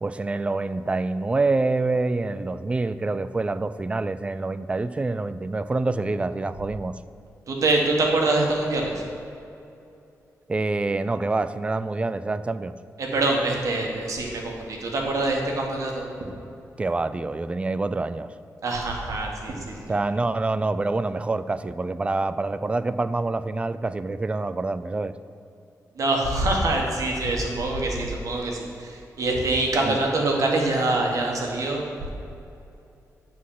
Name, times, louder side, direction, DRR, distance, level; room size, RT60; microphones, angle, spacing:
voice 1, 0.0-7.0 10.5-12.7 16.8-18.3 19.9-25.1 29.9-30.0, right 3 dB, 20° right, 13 dB, 0.3 m, -26 dB
voice 2, 7.5-9.0 13.0-16.0 18.6-20.1 25.9-32.1, right 2 dB, 65° right, 0 dB, 1.6 m, -25 dB
9.5 x 4.2 x 7.3 m, 2.7 s
cardioid pair, 105°, 6 cm